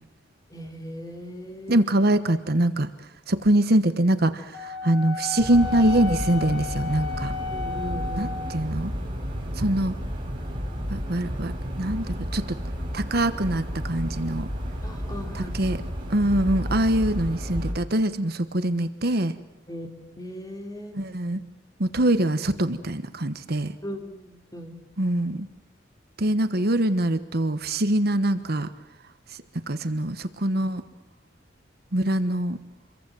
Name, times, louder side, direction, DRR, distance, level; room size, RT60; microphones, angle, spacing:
voice 1, 0.5-1.8 7.5-8.7 14.8-15.5 19.7-21.0 23.8-24.8, equal, 20° left, 3 dB, 3.5 m, -38 dB
voice 2, 1.7-2.9 3.3-7.3 8.2-8.3 8.5-8.9 9.6-10.0 10.9-12.6 12.9-14.5 15.3-15.8 16.1-19.3 20.9-21.4 21.8-23.8 25.0-25.5 26.2-28.7 29.7-30.8 31.9-32.6, right 1 dB, 55° right, 11 dB, 1.3 m, -23 dB
Wind instrument woodwind instrument, 4.5-8.7, left 4 dB, 70° left, 4.4 m, -33 dB
sound 1, 5.4-17.7, equal, 25° right, 6.9 m, -32 dB
27.5 x 22.5 x 7.8 m, 0.88 s
head